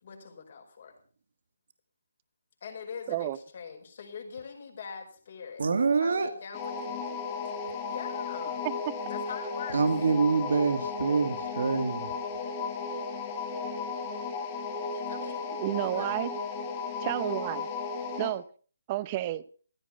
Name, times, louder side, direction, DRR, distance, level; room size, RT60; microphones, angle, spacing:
voice 1, 0.0-1.0 2.6-7.1 7.9-8.6 9.1-9.8 14.9-15.5 16.0-16.3, left 6 dB, 45° left, 5.2 m, -43 dB
voice 2, 5.6-6.3 9.7-12.1, right 4 dB, 65° right, 1.9 m, -26 dB
sound 1, 6.5-18.4, left 4 dB, 25° left, 2.3 m, -35 dB
voice 3, 15.6-16.3 17.0-17.7 18.2-18.4 18.9-19.4, right 15 dB, 25° right, 0.7 m, -31 dB
15.5 x 13.0 x 5.5 m
hypercardioid pair, 160°, 0 cm